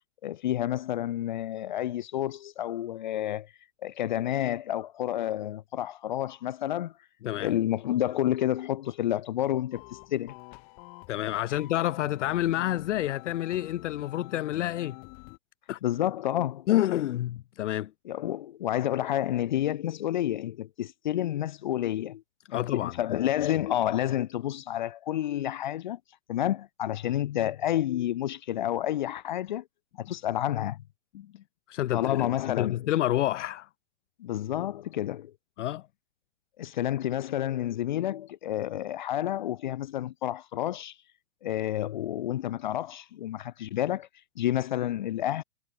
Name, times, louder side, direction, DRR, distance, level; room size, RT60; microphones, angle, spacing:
voice 1, 0.2-3.5 3.8-6.9 7.4-10.3 15.8-16.7 18.1-22.2 22.5-26.0 26.3-29.6 30.0-30.8 31.9-32.9 34.2-35.3 36.6-40.9 41.4-44.1 44.4-45.4, left 12 dB, 40° left, 1.0 m, -29 dB
voice 2, 7.2-7.6 11.1-15.0 15.7-15.8 16.7-17.9 22.5-23.2 31.1-33.7 35.6-35.8, left 13 dB, 75° left, 0.6 m, -29 dB
sound 1, 9.7-15.4, left 40 dB or more, 5° left, 0.4 m, -48 dB
hypercardioid pair, 175°, 37 cm